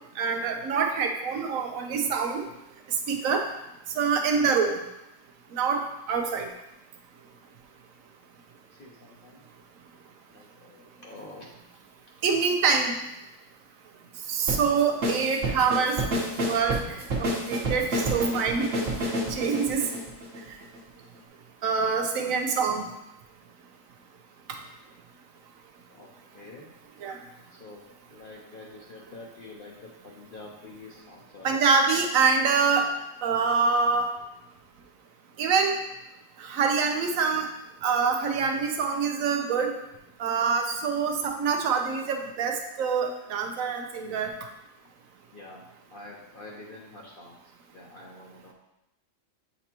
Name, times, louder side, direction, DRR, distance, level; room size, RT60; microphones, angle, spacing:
voice 1, 0.2-2.4 3.1-3.4 4.0-4.8 5.5-6.5 12.2-13.0 14.3-16.0 16.5-18.7 19.3-19.9 21.6-22.9 27.0-27.2 31.4-32.9 33.2-34.1 35.4-35.8 36.4-37.5 37.8-39.7 40.2-44.3, right 5 dB, 85° right, 4 dB, 1.1 m, -25 dB
voice 2, 8.7-9.5 10.3-11.4 25.9-26.1 26.3-26.7 27.5-27.8 28.1-31.6 34.5-34.6 45.3-47.4 47.7-48.5, left 2 dB, 50° left, -3 dB, 0.9 m, -47 dB
sound 1, 14.5-20.8, right 1 dB, 60° right, 1.4 m, -29 dB
7.9 x 4.3 x 2.9 m, 0.88 s
omnidirectional pair, 1.4 m